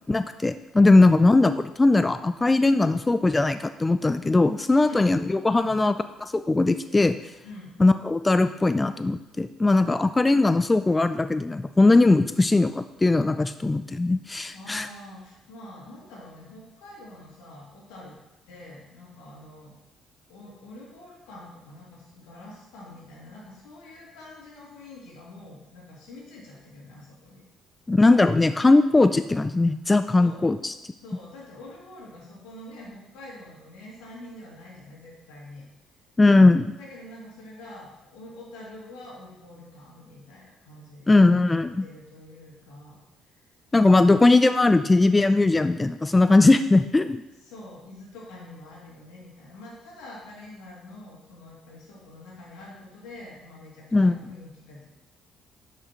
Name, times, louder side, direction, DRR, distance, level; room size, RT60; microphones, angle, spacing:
voice 1, 0.1-1.5 1.8-5.9 6.2-7.2 7.8-14.9 27.9-30.7 36.2-36.7 41.1-41.8 43.7-47.2 53.9-54.2, left 2 dB, 20° left, 10 dB, 0.3 m, -19 dB
voice 2, 0.9-1.3 4.7-5.0 5.5-5.8 7.4-7.7 14.5-18.2 18.5-19.7 20.3-27.4 30.2-30.5 31.0-35.6 36.7-41.5 41.8-43.0 43.4-43.5 47.4-54.8, left 1 dB, 90° left, -4 dB, 2.5 m, -45 dB
9.4 x 5.6 x 3.0 m, 0.96 s
supercardioid pair, 80°, 0 cm